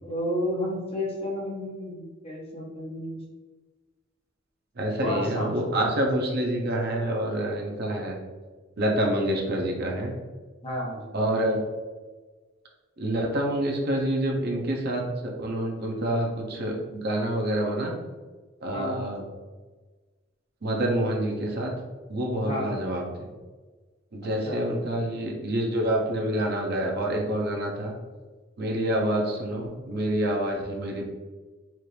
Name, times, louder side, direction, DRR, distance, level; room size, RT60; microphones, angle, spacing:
voice 1, 0.0-3.2 5.0-5.5 10.6-11.2 18.7-19.1 22.4-22.8 24.2-24.6, left 1 dB, 30° left, -2 dB, 0.8 m, -31 dB
voice 2, 4.8-8.2 8.8-10.1 11.1-11.6 13.0-17.9 18.6-19.2 20.6-21.7 22.1-23.3 24.1-27.9 28.6-31.1, right 1 dB, 50° right, 0 dB, 0.6 m, -27 dB
4.3 x 2.5 x 3.2 m, 1.3 s
head